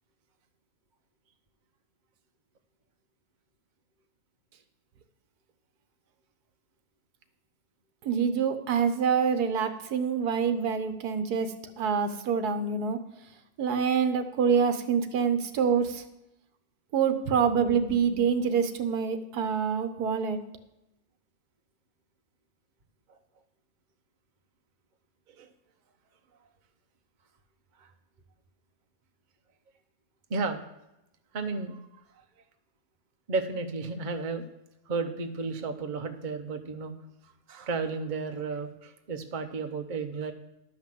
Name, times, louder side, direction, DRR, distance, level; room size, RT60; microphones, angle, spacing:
voice 1, 8.0-13.0 13.6-16.0 16.9-20.4, right 6 dB, 90° right, 9 dB, 1.5 m, -26 dB
voice 2, 30.3-30.6 31.3-31.8 33.3-34.4 34.9-37.0 37.5-40.3, right 4 dB, 40° right, 6 dB, 0.9 m, -33 dB
11.5 x 5.7 x 7.6 m, 0.89 s
omnidirectional pair, 1.6 m